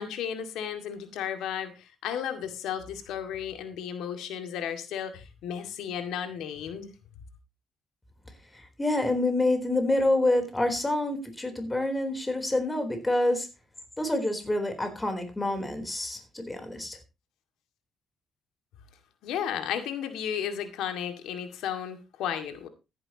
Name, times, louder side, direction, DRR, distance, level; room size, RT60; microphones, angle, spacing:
voice 1, 0.0-6.9 19.2-22.7, left 9 dB, 90° left, 7 dB, 2.2 m, -34 dB
voice 2, 8.8-13.5 14.0-17.0, left 1 dB, 15° left, 6 dB, 3.8 m, -27 dB
15.0 x 11.0 x 3.0 m, 0.27 s
cardioid pair, 90°, 0 cm